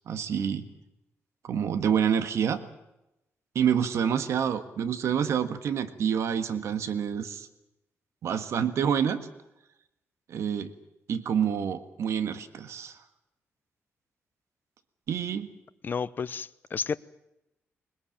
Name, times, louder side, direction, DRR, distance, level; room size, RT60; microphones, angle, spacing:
voice 1, 0.1-0.6 1.4-2.6 3.5-7.5 8.2-9.2 10.3-10.7 11.1-12.9 15.1-15.5, right 8 dB, 75° right, 10 dB, 1.6 m, -27 dB
voice 2, 15.8-17.0, left 6 dB, 40° left, 16 dB, 0.8 m, -31 dB
21.5 x 21.0 x 8.8 m, 0.90 s
wide cardioid pair, 130°, 5 cm